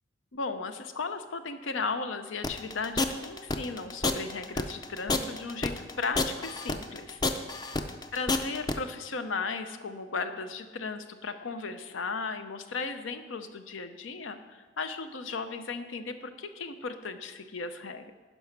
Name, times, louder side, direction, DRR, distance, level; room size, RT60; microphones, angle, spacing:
voice 1, 0.3-7.2 8.1-18.1, left 4 dB, 85° left, 9 dB, 0.7 m, -36 dB
sound 1, 2.4-8.7, left 3 dB, 20° left, 0.4 m, -29 dB
11.0 x 5.4 x 5.9 m, 1.3 s
head